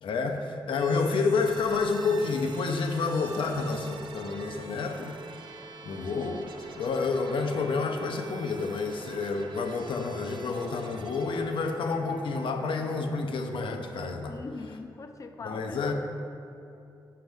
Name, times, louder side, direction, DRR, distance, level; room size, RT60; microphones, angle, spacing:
voice 1, 0.0-5.2 5.8-6.4 6.8-14.3 15.4-15.9, left 4 dB, 85° left, 4 dB, 0.6 m, -29 dB
sound 1, 0.7-14.6, right 4 dB, 70° right, 0.5 m, -46 dB
voice 2, 14.3-15.9, left 3 dB, 40° left, 7 dB, 0.4 m, -41 dB
7.6 x 5.3 x 3.4 m, 2.7 s
wide cardioid pair, 160°, 8 cm